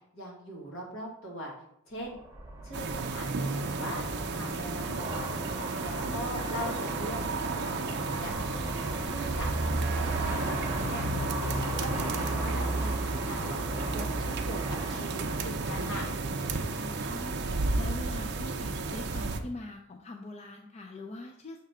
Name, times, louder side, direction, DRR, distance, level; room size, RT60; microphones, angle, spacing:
voice 1, 0.1-1.5 1.9-2.2 2.6-4.0 4.3-5.3 5.8-7.4 8.2-8.7 9.0-11.1 11.4-16.1, equal, 65° left, -3 dB, 1.9 m, -41 dB
Aircraft, 2.1-19.4, right 1 dB, 10° right, 0.9 m, -36 dB
sound 1, 2.7-19.4, right 3 dB, 50° right, 0.5 m, -33 dB
voice 2, 6.0-6.5 16.8-21.6, left 2 dB, 30° left, 4 dB, 0.4 m, -43 dB
6.5 x 3.2 x 4.9 m, 0.75 s
head